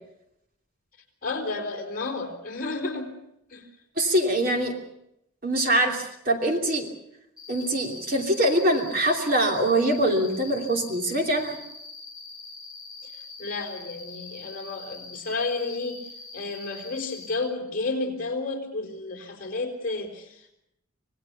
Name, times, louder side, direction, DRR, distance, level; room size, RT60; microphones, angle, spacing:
voice 1, 1.2-3.1 3.5-3.7 13.0-20.5, left 3 dB, 40° left, 3 dB, 4.1 m, -32 dB
voice 2, 4.0-4.7 5.4-6.9 7.5-11.6, right 1 dB, 40° right, 3 dB, 3.0 m, -23 dB
Cricket, 7.4-17.4, left 4 dB, 5° right, 6.4 m, -43 dB
26.0 x 19.0 x 6.9 m, 0.80 s
head